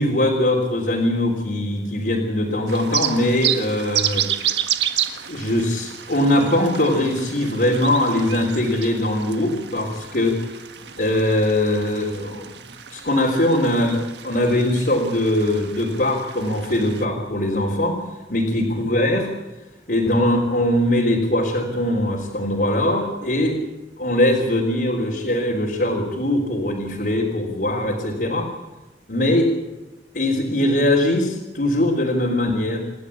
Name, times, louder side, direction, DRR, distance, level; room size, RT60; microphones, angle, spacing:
voice 1, 0.0-4.3 5.3-10.4 11.0-12.5 12.9-18.0 18.3-19.3 19.9-23.6 24.0-28.5 29.1-29.5 30.1-32.8, left 1 dB, 55° left, -2 dB, 3.6 m, -21 dB
sound 1, 2.7-17.1, right 10 dB, 80° right, 1.6 m, -30 dB
28.5 x 11.5 x 8.6 m, 1.1 s
head